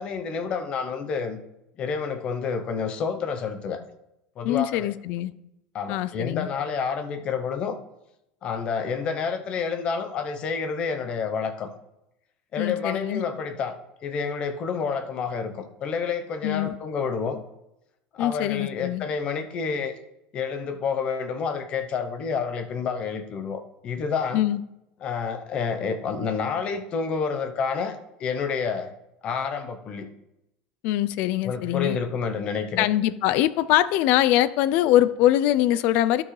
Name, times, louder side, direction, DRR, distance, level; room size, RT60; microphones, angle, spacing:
voice 1, 0.0-1.4 1.8-3.8 4.4-4.9 5.7-7.7 8.4-11.7 12.5-13.7 14.0-17.4 18.1-19.9 20.3-24.4 25.0-28.9 29.2-30.1 31.4-32.9, left 5 dB, 30° left, 8 dB, 0.8 m, -29 dB
voice 2, 4.4-5.3 5.9-6.5 12.6-13.2 16.4-16.7 18.2-19.1 24.3-24.6 30.8-32.0 32.8-36.2, left 13 dB, 50° left, 16 dB, 0.4 m, -23 dB
12.0 x 6.0 x 3.2 m, 0.87 s
cardioid pair, 165°, 3 cm